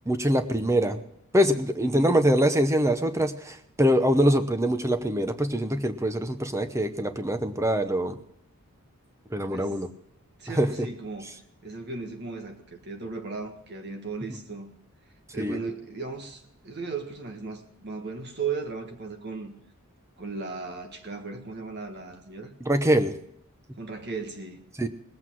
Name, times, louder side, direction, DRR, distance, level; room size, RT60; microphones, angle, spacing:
voice 1, 0.1-1.0 1.3-8.1 9.3-9.9 10.5-10.7 15.4-15.6 22.6-23.1 24.8-24.9, equal, 15° right, 9 dB, 0.8 m, -24 dB
voice 2, 1.8-2.2 9.5-9.7 10.4-11.3 11.6-14.7 15.3-19.5 20.2-22.5 23.8-24.6, right 4 dB, 50° right, 5 dB, 1.5 m, -36 dB
19.0 x 8.2 x 6.2 m, 0.73 s
head